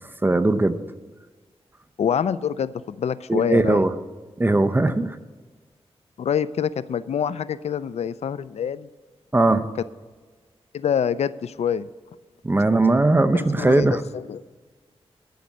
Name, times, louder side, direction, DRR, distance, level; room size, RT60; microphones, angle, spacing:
voice 1, 0.2-0.8 3.3-3.9 4.4-5.2 9.3-9.7 12.4-14.0, right 2 dB, 20° right, 9 dB, 0.6 m, -19 dB
voice 2, 2.0-3.8 6.2-8.9 10.7-11.9 13.3-14.4, left 8 dB, 85° left, 16 dB, 0.4 m, -26 dB
12.0 x 5.2 x 8.4 m, 1.4 s
wide cardioid pair, 90°, 11 cm